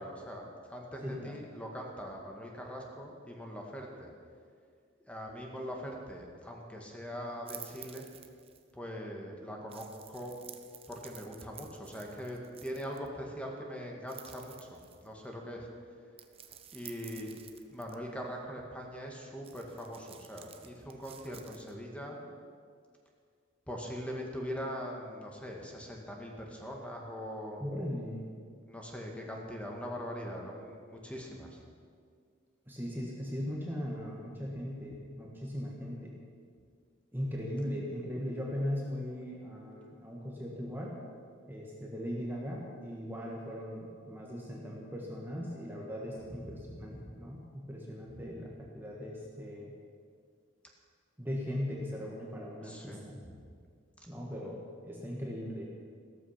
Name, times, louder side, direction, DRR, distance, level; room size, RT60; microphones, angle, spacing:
voice 1, 0.0-4.1 5.1-8.1 8.7-10.3 10.9-15.7 16.7-17.3 17.7-22.2 23.7-27.6 28.7-31.6 46.4-47.1 52.6-53.3, equal, 5° left, 0 dB, 2.0 m, -42 dB
voice 2, 1.0-1.4 27.6-28.2 32.7-36.2 37.1-41.0 41.5-49.7 51.2-53.2 54.1-54.6 54.8-55.7, equal, 10° right, -3 dB, 1.7 m, -39 dB
sound 1, 7.5-8.7 9.7-13.1 14.1-15.2 16.2-17.9 19.4-21.7, right 9 dB, 30° right, 0.9 m, -52 dB
15.5 x 14.0 x 5.9 m, 2.1 s
head